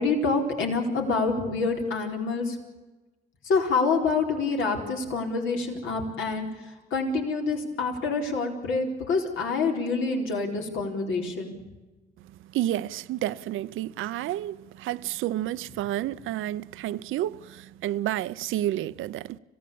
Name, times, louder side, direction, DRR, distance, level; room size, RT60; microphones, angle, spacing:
voice 1, 0.0-2.6 3.4-11.5, left 4 dB, 75° left, 4.5 m, -27 dB
voice 2, 12.5-19.4, right 13 dB, 80° right, 0.7 m, -30 dB
26.5 x 17.0 x 8.7 m
cardioid pair, 80°, 20 cm